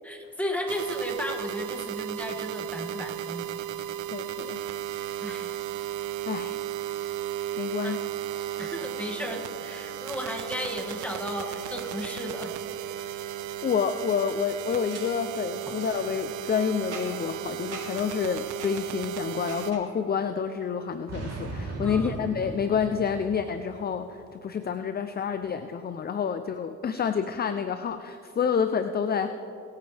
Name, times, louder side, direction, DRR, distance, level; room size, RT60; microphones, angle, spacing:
voice 1, 0.0-3.5 5.2-5.5 7.8-8.0 8.6-12.6 21.8-22.2, left 1 dB, 5° left, 1 dB, 2.1 m, -34 dB
sound 1, 0.7-19.7, right 12 dB, 80° right, 0.7 m, -35 dB
voice 2, 4.1-4.6 6.3-6.6 7.6-8.0 13.0-13.1 13.4-29.3, left 7 dB, 30° left, 10 dB, 0.5 m, -29 dB
Boom, 14.9-15.0 15.7-16.0 16.9-17.3 17.7-18.1 18.6-18.8 19.5-19.9 21.1-23.8, right 3 dB, 55° right, 3.3 m, -38 dB
24.0 x 9.1 x 3.4 m, 2.8 s
cardioid pair, 90°, 30 cm